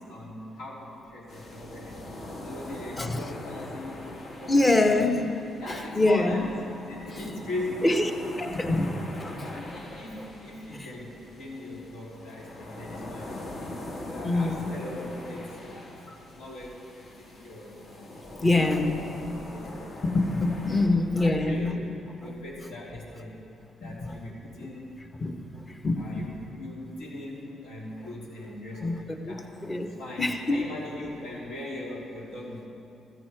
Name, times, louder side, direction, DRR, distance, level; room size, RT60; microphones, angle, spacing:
voice 1, 0.0-2.1 2.4-4.0 4.4-5.1 5.6-6.6 6.8-8.2 8.7-8.9 9.4-13.3 14.0-18.1 18.4-19.7 20.8-21.8 22.2-23.4 23.8-24.9 26.0-29.5 30.0-32.7, left 1 dB, 85° left, -4 dB, 3.6 m, -40 dB
sound 1, 1.3-20.9, left 1 dB, 60° left, 2.4 m, -42 dB
voice 2, 4.5-5.3 5.9-6.4 7.8-8.0 8.4-8.9 9.2-9.4 10.7-10.9 14.2-14.7 18.4-19.0 20.0-21.7 23.8-24.1 25.2-25.4 25.8-26.3 28.8-29.4 29.6-29.9 30.2-30.6, left 2 dB, 25° left, 6 dB, 1.1 m, -24 dB
14.5 x 13.5 x 4.8 m, 2.7 s
cardioid pair, 90°, 0 cm